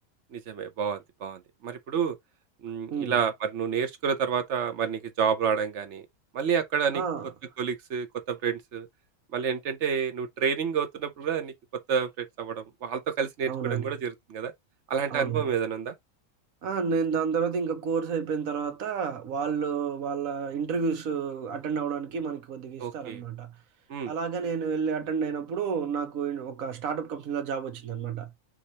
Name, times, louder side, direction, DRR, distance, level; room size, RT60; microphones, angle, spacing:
voice 1, 0.3-2.2 2.6-6.0 6.3-7.0 7.6-8.9 9.3-14.5 14.9-15.9 22.8-23.2 23.9-24.1, right 7 dB, 60° right, 1.0 m, -29 dB
voice 2, 6.9-7.3 13.5-13.9 15.1-15.5 16.6-23.5 24.1-28.3, right 6 dB, 80° right, 1.3 m, -30 dB
3.7 x 3.1 x 4.1 m
omnidirectional pair, 1.4 m